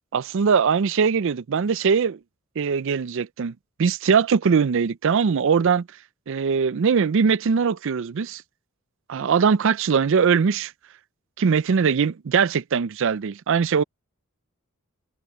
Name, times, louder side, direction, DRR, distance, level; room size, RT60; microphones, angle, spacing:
voice 1, 0.1-2.2 2.6-3.5 3.8-5.9 6.3-8.4 9.1-10.7 11.4-13.8, right 6 dB, 65° right, 0.4 m, -21 dB
head